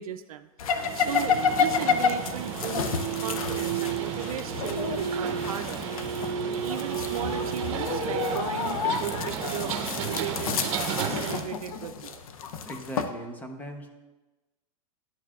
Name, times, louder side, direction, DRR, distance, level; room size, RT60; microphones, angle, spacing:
voice 1, 0.0-2.9 3.2-5.8 6.4-12.2, right 10 dB, 85° right, 10 dB, 0.5 m, -36 dB
sound 1, 0.6-13.1, left 6 dB, 80° left, 0.6 m, -30 dB
sound 2, 0.8-11.4, right 8 dB, 55° right, 0.8 m, -32 dB
voice 2, 12.6-13.9, right 1 dB, 10° left, 5 dB, 0.6 m, -39 dB
11.0 x 4.6 x 2.4 m, 1.1 s
hypercardioid pair, 140°, 18 cm